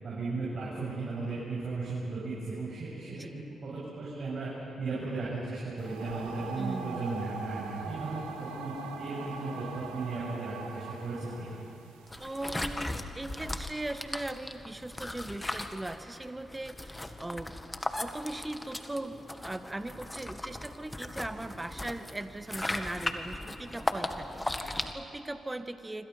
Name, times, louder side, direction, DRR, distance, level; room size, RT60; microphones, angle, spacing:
voice 1, 0.0-4.5 4.8-8.2 8.5-11.6, right 3 dB, 55° right, -7 dB, 7.8 m, -36 dB
sound 1, 5.8-12.9, right 5 dB, 90° right, 1.9 m, -42 dB
voice 2, 6.6-7.1 12.2-17.5 18.0-26.1, right 1 dB, 20° right, 10 dB, 1.6 m, -39 dB
sound 2, 12.1-24.9, left 1 dB, 15° left, 1.9 m, -37 dB
27.0 x 25.5 x 5.8 m, 2.8 s
hypercardioid pair, 45°, 0 cm